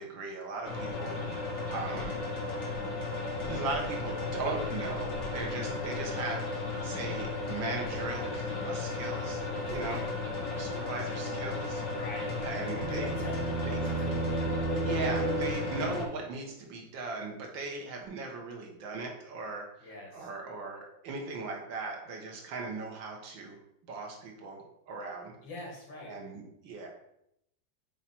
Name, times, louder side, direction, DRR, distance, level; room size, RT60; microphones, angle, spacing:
voice 1, 0.0-2.1 3.2-9.4 9.7-10.1 10.5-11.8 12.4-13.1 13.7-13.8 14.8-23.6 23.9-25.3 26.1-26.9, right 3 dB, 75° right, 0 dB, 1.9 m, -38 dB
sound 1, 0.6-16.1, left 3 dB, 40° left, 1.4 m, -35 dB
voice 2, 9.6-10.1 11.9-12.5 12.8-14.2 19.8-20.3 25.4-26.1, left 1 dB, 75° left, -3 dB, 2.7 m, -43 dB
sound 2, 12.1-16.1, right 3 dB, 45° right, 1.3 m, -33 dB
8.7 x 3.2 x 4.4 m, 0.77 s
omnidirectional pair, 2.1 m